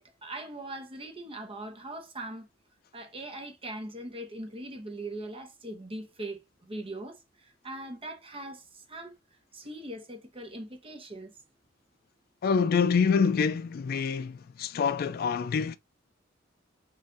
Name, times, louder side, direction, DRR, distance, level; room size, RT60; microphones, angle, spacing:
voice 1, 0.0-2.5 2.9-7.2 7.6-9.1 9.5-11.3, right 1 dB, 30° right, 0.9 m, -40 dB
voice 2, 12.4-15.8, left 5 dB, 50° left, 0.3 m, -26 dB
4.4 x 2.6 x 3.6 m
head